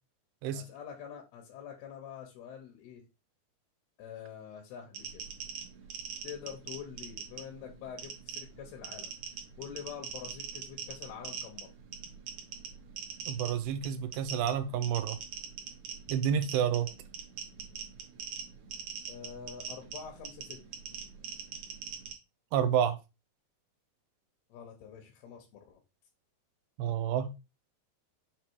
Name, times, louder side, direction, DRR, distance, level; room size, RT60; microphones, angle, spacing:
voice 1, 0.5-3.1 4.0-5.2 6.2-9.2 9.6-11.7 19.1-20.6 24.5-25.8, left 8 dB, 85° left, 3.1 m, -46 dB
sound 1, 4.9-22.1, right 7 dB, 60° right, 2.1 m, -43 dB
voice 2, 13.3-15.2 16.1-16.9 22.5-23.0 26.8-27.3, right 9 dB, 85° right, 2.5 m, -29 dB
7.4 x 2.8 x 4.6 m
omnidirectional pair, 4.4 m